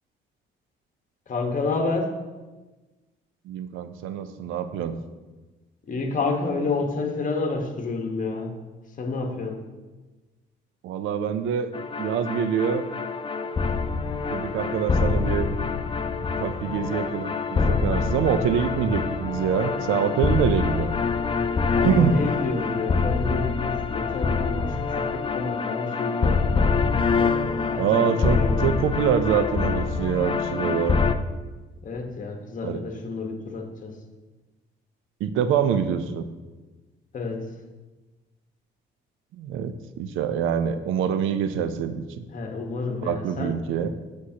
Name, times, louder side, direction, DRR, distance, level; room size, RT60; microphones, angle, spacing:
voice 1, 1.3-2.1 5.8-8.5 9.0-9.6 21.7-26.4 27.1-28.6 31.8-33.9 37.1-37.5 42.3-43.6, left 3 dB, 40° left, 3 dB, 1.2 m, -29 dB
voice 2, 3.5-5.0 10.8-11.7 12.0-12.8 14.3-15.5 16.4-20.9 21.8-22.2 27.8-31.0 32.6-32.8 35.2-36.3 39.3-42.2 43.0-43.9, right 8 dB, 90° right, 11 dB, 0.5 m, -25 dB
sound 1, 11.7-31.1, left 4 dB, 25° left, 0.4 m, -25 dB
8.1 x 6.3 x 2.8 m, 1.2 s
cardioid pair, 90°, 20 cm